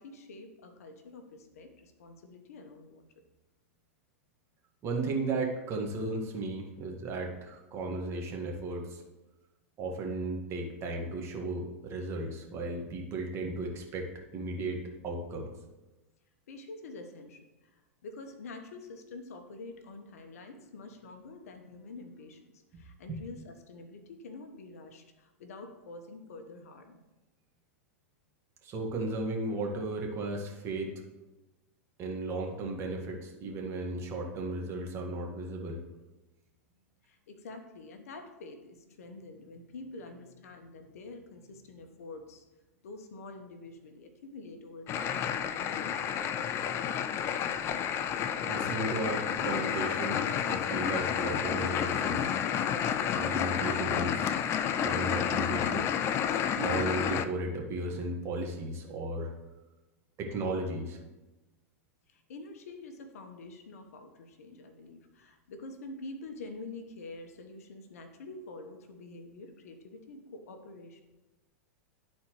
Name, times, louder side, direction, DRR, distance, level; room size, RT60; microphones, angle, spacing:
voice 1, 0.0-3.2 16.5-27.0 37.0-42.4 42.8-46.6 62.1-71.0, left 3 dB, 75° left, 6 dB, 1.0 m, -47 dB
voice 2, 4.8-9.0 9.8-15.5 28.6-30.9 32.0-35.8 48.5-52.3 53.1-54.3 54.8-55.9 56.5-59.3 60.2-61.0, right 2 dB, 35° right, 0 dB, 1.5 m, -35 dB
sound 1, 44.9-57.2, left 8 dB, 30° left, 0.4 m, -30 dB
11.5 x 4.2 x 3.0 m, 1.1 s
hypercardioid pair, 115°, 8 cm